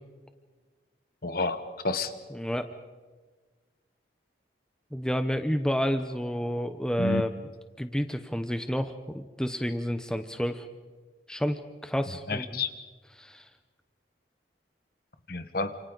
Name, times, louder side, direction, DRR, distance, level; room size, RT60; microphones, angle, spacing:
voice 1, 1.2-2.1 7.0-7.2 12.3-12.7 15.3-15.8, left 3 dB, 55° left, 10 dB, 1.3 m, -30 dB
voice 2, 2.3-2.7 4.9-7.3 7.8-10.7 11.3-12.6 13.2-13.4, equal, 5° left, 8 dB, 0.8 m, -30 dB
29.0 x 27.5 x 4.0 m, 1.4 s
head